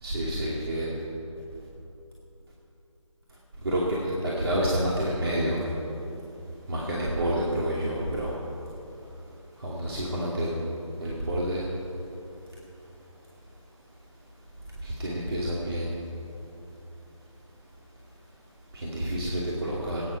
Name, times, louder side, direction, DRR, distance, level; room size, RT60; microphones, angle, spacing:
voice 1, 0.0-0.9 3.6-5.6 6.7-8.3 9.6-10.6 11.0-11.6 14.8-16.0 18.7-20.0, right 1 dB, 50° right, -5 dB, 2.6 m, -28 dB
20.5 x 9.7 x 5.8 m, 2.9 s
figure-of-eight pair, 155°, 17 cm